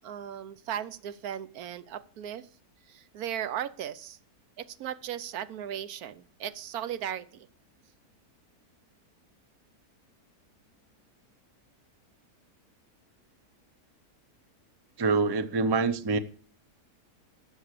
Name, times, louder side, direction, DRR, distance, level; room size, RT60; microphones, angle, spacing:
voice 1, 0.0-2.5 2.9-4.2 4.6-7.5, right 10 dB, 75° right, 1.2 m, -37 dB
voice 2, 15.0-16.2, right 4 dB, 35° right, 0.3 m, -25 dB
13.0 x 7.0 x 6.6 m
omnidirectional pair, 1.6 m